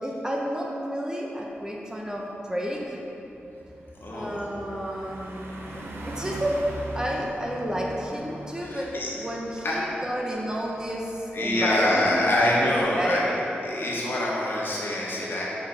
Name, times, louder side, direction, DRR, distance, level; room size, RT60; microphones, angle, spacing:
voice 1, 0.0-3.0 4.1-5.5 6.0-13.3, equal, 15° right, -2 dB, 0.9 m, -31 dB
Car passing by, 1.5-1.7 2.1-13.1, right 1 dB, 80° right, 0.7 m, -42 dB
voice 2, 4.0-4.4 8.6-9.1 9.6-9.8 11.3-15.5, left 1 dB, 60° left, -5 dB, 1.4 m, -25 dB
6.0 x 5.1 x 4.1 m, 3.0 s
cardioid pair, 55°, 4 cm